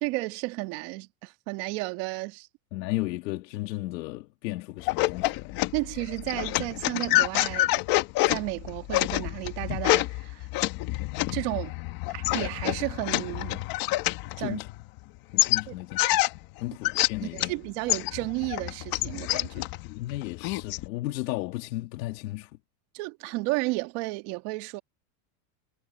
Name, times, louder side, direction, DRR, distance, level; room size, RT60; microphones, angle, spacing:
voice 1, 0.0-2.5 5.7-7.8 8.3-10.5 11.3-11.7 12.1-13.7 14.4-14.6 15.7-15.8 17.2-19.6 22.9-24.8, right 23 dB, 55° right, 1.5 m, -32 dB
voice 2, 2.7-5.5 14.4-14.7 15.3-16.3 16.6-17.5 19.5-22.5, left 18 dB, 80° left, 2.2 m, -34 dB
sound 1, 4.8-15.0 15.4-17.6 17.9-20.9, left 18 dB, 45° left, 1.4 m, -27 dB
supercardioid pair, 160°, 49 cm